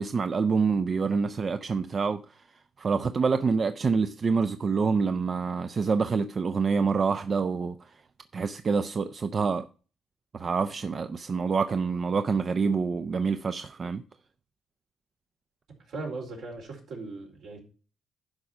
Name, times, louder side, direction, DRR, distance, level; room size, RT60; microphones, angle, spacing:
voice 1, 0.0-2.4 2.8-8.0 8.3-9.7 10.3-14.0, right 5 dB, 40° right, 0.5 m, -27 dB
voice 2, 15.9-17.6, right 3 dB, 75° right, 4.3 m, -38 dB
11.5 x 5.0 x 5.9 m
cardioid pair, 90°, 0 cm